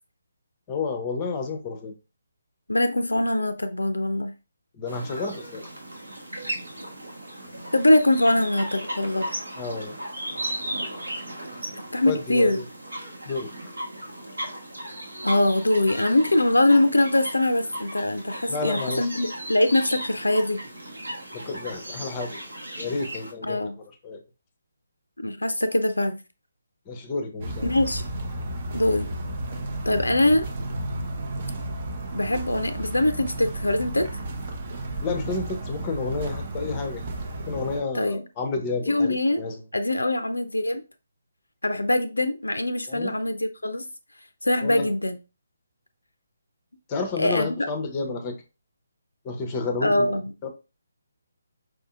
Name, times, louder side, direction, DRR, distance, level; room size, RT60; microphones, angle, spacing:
voice 1, 0.7-1.9 4.8-5.7 9.6-10.0 12.0-12.6 13.3-13.5 18.5-19.1 21.3-22.4 22.8-23.6 24.0-24.2 26.9-27.7 35.0-37.1 37.5-39.6 42.9-43.2 44.6-44.9 46.9-48.3 49.2-50.1 50.4-50.5, left 4 dB, 20° left, 0.6 m, -30 dB
voice 2, 2.7-4.3 7.7-9.3 11.9-12.6 15.2-20.6 23.4-23.8 25.2-26.2 27.6-28.0 28.7-29.1 29.9-30.5 32.1-34.1 37.9-38.2 38.9-39.4 39.7-40.8 41.6-43.9 44.4-45.2 47.2-47.5 49.8-50.3, left 1 dB, 75° left, 0.4 m, -22 dB
sound 1, 4.9-23.3, right 1 dB, 70° right, 1.1 m, -36 dB
sound 2, 27.4-37.8, right 1 dB, 35° right, 0.6 m, -33 dB
4.7 x 2.6 x 2.4 m
figure-of-eight pair, 145°, 0 cm